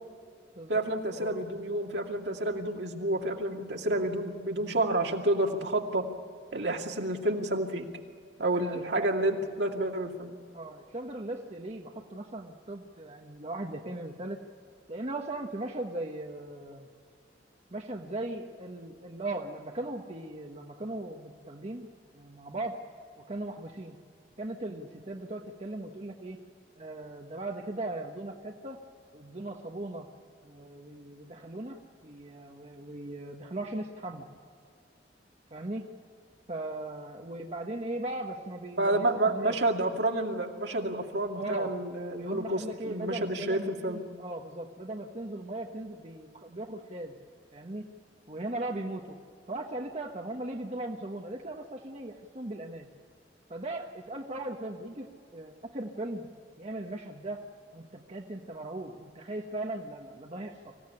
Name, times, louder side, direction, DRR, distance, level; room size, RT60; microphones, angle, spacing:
voice 1, 0.7-6.1 6.5-7.8 8.4-10.4 38.8-44.0, right 1 dB, 65° right, 2 dB, 2.5 m, -29 dB
voice 2, 8.5-9.4 10.5-14.4 14.9-16.9 17.7-22.8 23.3-24.0 24.4-26.4 26.8-28.8 29.1-30.1 30.4-34.3 35.5-35.9 36.5-39.6 41.4-41.8 42.2-47.2 47.5-47.9 48.3-49.2 49.5-52.9 53.5-56.3 56.6-57.4 57.7-60.6, right 2 dB, 35° right, 2 dB, 1.3 m, -38 dB
25.0 x 16.0 x 9.8 m, 2.3 s
head